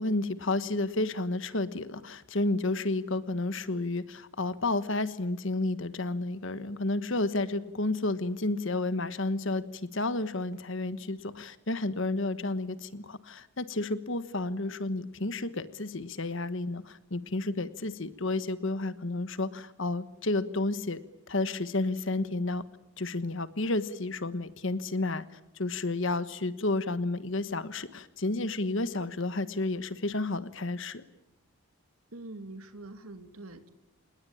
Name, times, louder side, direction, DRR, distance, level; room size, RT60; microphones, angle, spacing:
voice 1, 0.0-21.0 21.3-22.6 23.0-31.0, left 2 dB, 60° left, 13 dB, 1.3 m, -31 dB
voice 2, 32.1-33.7, right 2 dB, 85° right, 9 dB, 2.4 m, -44 dB
28.0 x 20.5 x 8.8 m, 0.90 s
head